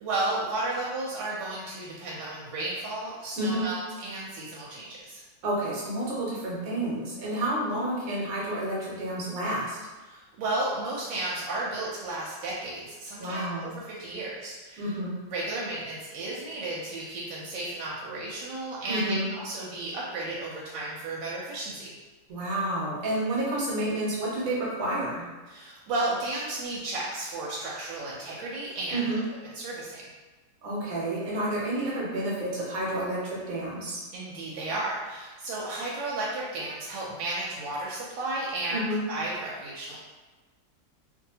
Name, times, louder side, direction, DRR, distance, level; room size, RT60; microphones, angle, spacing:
voice 1, 0.0-5.2 10.0-14.9 15.3-21.9 25.5-29.1 29.5-30.0 34.1-40.0, right 2 dB, 85° right, -5 dB, 1.2 m, -33 dB
voice 2, 3.4-3.7 5.4-9.8 13.2-13.7 14.8-15.2 18.9-19.3 22.3-25.2 28.9-29.2 30.6-34.0 38.7-39.0, right 1 dB, 60° right, -5 dB, 1.2 m, -30 dB
2.8 x 2.6 x 2.7 m, 1.3 s
omnidirectional pair, 1.9 m